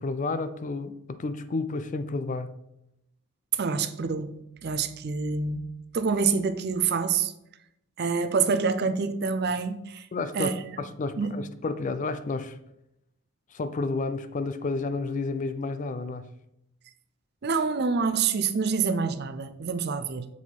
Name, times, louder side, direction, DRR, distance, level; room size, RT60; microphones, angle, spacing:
voice 1, 0.0-2.5 10.1-12.6 13.5-16.3, left 3 dB, 35° left, 0.4 m, -31 dB
voice 2, 3.5-4.4 4.6-5.7 5.9-7.3 8.0-10.1 10.3-10.6 11.2-11.3 17.4-20.3, right 5 dB, 50° right, 0.5 m, -26 dB
7.2 x 4.1 x 4.5 m
head